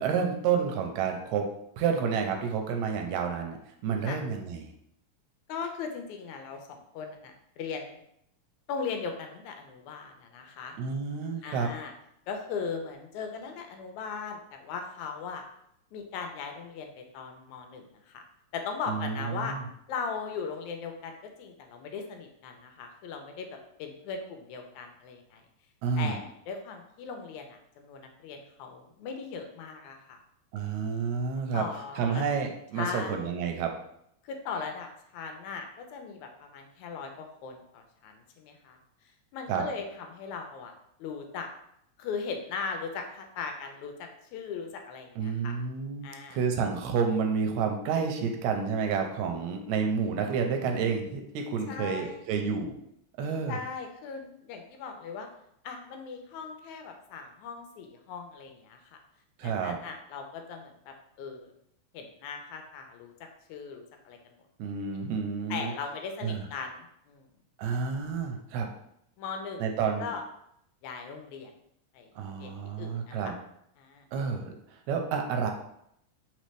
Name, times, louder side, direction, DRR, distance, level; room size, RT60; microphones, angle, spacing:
voice 1, 0.0-1.5 1.8-3.6 3.8-4.7 10.8-11.7 18.9-19.6 25.8-26.2 30.5-31.6 32.0-33.7 39.5-39.6 45.2-52.7 53.2-53.6 59.4-59.8 64.6-65.7 66.2-66.4 67.6-68.7 69.6-70.1 72.2-73.3 74.1-74.5 74.9-75.5, right 6 dB, 80° right, 4 dB, 1.9 m, -29 dB
voice 2, 5.5-8.0 8.7-10.8 11.4-11.9 12.3-15.5 15.9-18.2 18.5-19.6 19.9-25.4 26.0-30.2 31.5-32.3 32.7-33.3 34.2-38.8 39.3-40.7 41.0-41.5 42.0-45.6 46.0-46.4 51.7-52.2 53.5-55.3 55.6-59.0 59.4-61.5 61.9-63.1 63.5-64.4 65.5-67.3 69.2-70.2 70.8-71.5 71.9-72.1 72.4-72.5 72.8-73.3 73.8-74.1, left 5 dB, 85° left, 4 dB, 2.0 m, -38 dB
4.1 x 4.0 x 3.2 m, 0.74 s
omnidirectional pair, 3.3 m